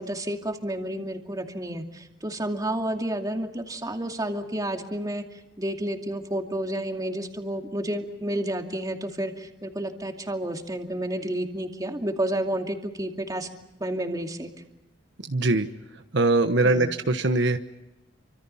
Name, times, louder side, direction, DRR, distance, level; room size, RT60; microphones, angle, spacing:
voice 1, 0.0-13.5 13.8-14.5 16.6-16.9, right 1 dB, 20° right, 3 dB, 2.5 m, -30 dB
voice 2, 15.3-15.7 16.1-17.6, right 2 dB, 65° right, 8 dB, 1.2 m, -22 dB
29.0 x 25.5 x 5.7 m, 0.96 s
head